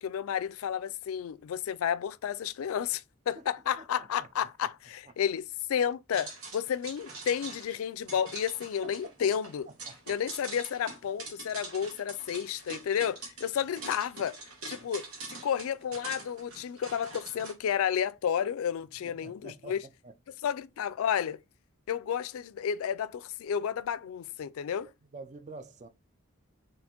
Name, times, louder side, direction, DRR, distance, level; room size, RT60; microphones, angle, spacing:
voice 1, 0.0-9.7 10.1-14.4 14.7-15.1 15.3-19.8 20.4-21.4 21.9-24.9, left 8 dB, 70° left, 0.3 m, -31 dB
voice 2, 3.8-4.3 8.8-9.3 9.8-10.1 14.8-14.9 19.0-20.1 25.1-25.9, right 2 dB, 35° right, 0.4 m, -48 dB
sound 1, 6.1-17.5, right 3 dB, 85° right, 1.3 m, -44 dB
4.2 x 3.3 x 2.8 m
head